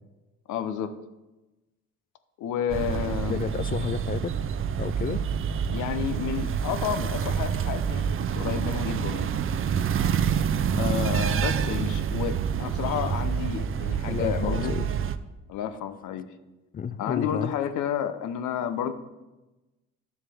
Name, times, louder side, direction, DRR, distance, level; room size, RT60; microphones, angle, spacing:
voice 1, 0.5-1.0 2.4-3.5 5.7-9.3 10.7-14.8 15.5-16.3 17.0-18.9, left 9 dB, 80° left, 0.8 m, -31 dB
sound 1, 2.7-15.2, right 7 dB, 45° right, 0.5 m, -27 dB
voice 2, 3.3-4.4 4.8-5.2 14.1-14.8 16.7-17.5, left 7 dB, 30° left, 0.4 m, -31 dB
10.5 x 7.1 x 3.5 m
cardioid pair, 90°, 30 cm